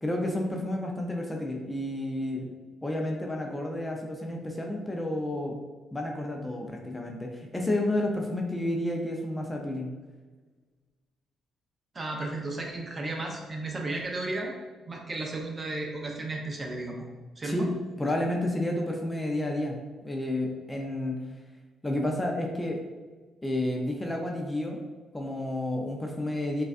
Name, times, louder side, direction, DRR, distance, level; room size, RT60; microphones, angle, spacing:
voice 1, 0.0-2.5 2.8-5.6 5.9-9.9 17.4-21.2 21.8-22.8 23.4-24.8 25.1-26.6, left 1 dB, 15° left, 1 dB, 0.5 m, -31 dB
voice 2, 11.9-14.5 14.9-17.0 17.4-17.7, right 2 dB, 30° right, 0 dB, 0.7 m, -34 dB
5.0 x 2.3 x 2.4 m, 1.3 s
cardioid pair, 90°, 0 cm